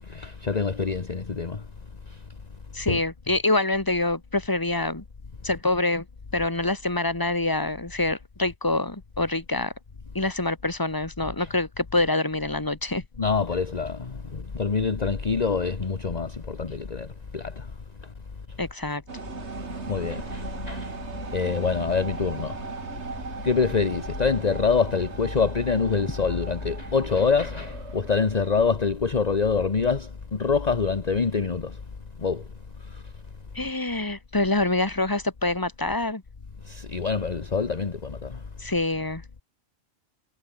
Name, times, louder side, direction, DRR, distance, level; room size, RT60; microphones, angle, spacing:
voice 1, 0.1-1.6 2.9-3.0 11.4-11.5 13.2-17.1 17.3-17.7 19.9-20.9 21.3-22.5 23.4-31.8 32.2-32.4 36.6-38.4, left 5 dB, 40° left, 1.3 m, -25 dB
voice 2, 2.7-5.0 5.4-6.0 6.3-9.7 10.2-13.0 18.6-19.0 33.6-36.2 38.6-39.2, left 2 dB, 20° left, 2.0 m, -26 dB
sound 1, 19.1-28.7, right 4 dB, 85° right, 2.4 m, -38 dB
omnidirectional pair, 1.1 m